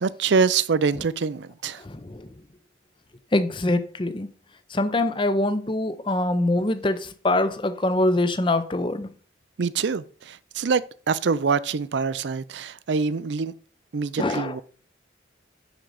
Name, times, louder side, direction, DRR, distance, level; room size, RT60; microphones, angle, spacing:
voice 1, 0.0-1.8 9.6-13.5 13.9-14.6, right 5 dB, 70° right, 0.5 m, -25 dB
voice 2, 1.8-2.3 3.3-4.3 4.7-9.1 14.2-14.5, left 2 dB, 25° left, 0.6 m, -24 dB
10.5 x 3.9 x 4.8 m
head